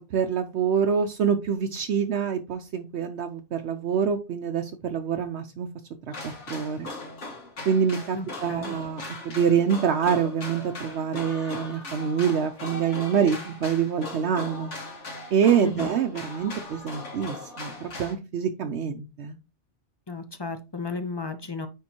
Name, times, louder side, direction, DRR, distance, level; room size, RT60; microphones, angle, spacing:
voice 1, 0.1-5.7 6.1-6.9 7.7-14.7 15.3-19.3, right 7 dB, 70° right, 6 dB, 0.9 m, -26 dB
sound 1, 6.1-18.1, left 2 dB, 80° left, 1.9 m, -39 dB
voice 2, 8.2-8.8 15.6-15.9 20.1-21.7, left 3 dB, 30° left, 9 dB, 0.5 m, -33 dB
9.5 x 3.7 x 2.9 m, 0.28 s
omnidirectional pair, 1.2 m